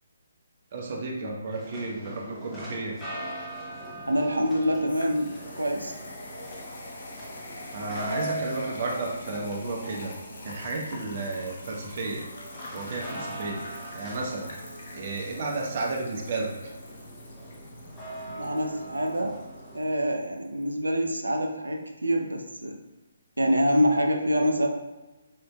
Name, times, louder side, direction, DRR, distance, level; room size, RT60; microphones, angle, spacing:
voice 1, 0.7-3.0 7.7-10.1 10.4-12.2 12.7-13.6 13.9-14.5 14.9-16.7, right 3 dB, 45° right, 0 dB, 0.7 m, -32 dB
sound 1, 1.5-19.8, right 1 dB, 10° left, 0.8 m, -41 dB
sound 2, 2.7-20.7, left 1 dB, 60° left, 0.7 m, -45 dB
voice 2, 4.1-6.0 18.3-19.4 19.7-22.8 23.4-24.7, equal, 90° right, 3 dB, 0.5 m, -26 dB
4.5 x 2.6 x 2.2 m, 1.1 s
figure-of-eight pair, 145°, 0 cm